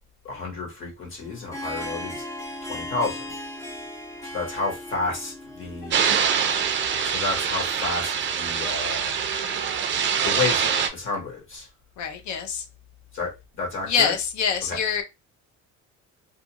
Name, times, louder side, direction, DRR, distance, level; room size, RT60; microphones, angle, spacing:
voice 1, 0.2-2.2 2.6-3.3 4.3-5.9 7.0-9.2 10.2-11.7 13.1-14.2 14.7-14.8, left 3 dB, 40° left, 1.2 m, -30 dB
Harp, 1.2-9.0, left 1 dB, 10° left, 0.5 m, -38 dB
sound 1, 5.8-10.8, right 4 dB, 90° left, 1.2 m, -43 dB
sound 2, 5.9-10.9, right 7 dB, 40° right, 0.4 m, -24 dB
voice 2, 12.0-12.6 13.9-15.0, left 7 dB, 70° left, 0.7 m, -25 dB
2.5 x 2.3 x 2.8 m
cardioid pair, 145°, 30 cm